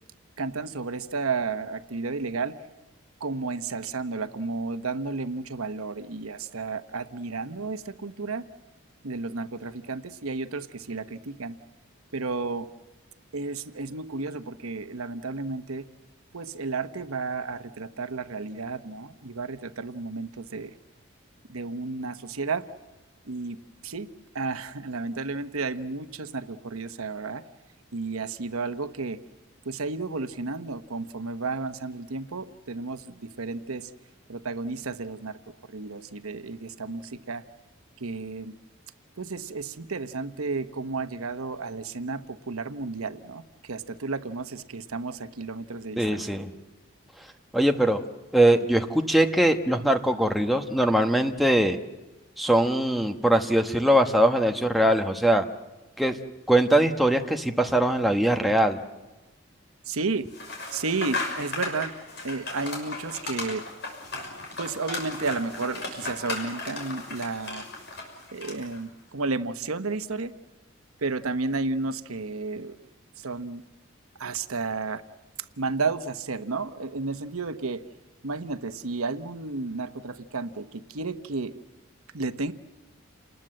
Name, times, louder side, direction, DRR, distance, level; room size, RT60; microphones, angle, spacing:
voice 1, 0.4-2.5 3.2-8.4 9.0-11.6 12.1-12.7 13.3-15.9 16.3-20.7 21.5-22.7 23.3-23.6 23.8-24.1 24.3-27.4 27.9-29.2 29.6-33.9 34.3-35.4 35.7-37.4 38.0-38.5 39.2-46.3 59.9-60.2 60.7-61.9 62.2-63.6 64.6-67.7 68.3-70.3 71.0-72.8 73.2-73.6 74.2-75.0 75.6-77.8 78.2-81.6 82.1-82.5, right 3 dB, 85° right, 10 dB, 1.1 m, -32 dB
voice 2, 46.0-46.5 47.5-48.0 48.3-51.8 52.4-55.4 56.0-56.2 56.5-58.8, right 1 dB, ahead, 3 dB, 1.1 m, -21 dB
sound 1, 60.3-68.8, left 3 dB, 55° left, 6.1 m, -36 dB
29.0 x 20.5 x 7.6 m, 1.1 s
head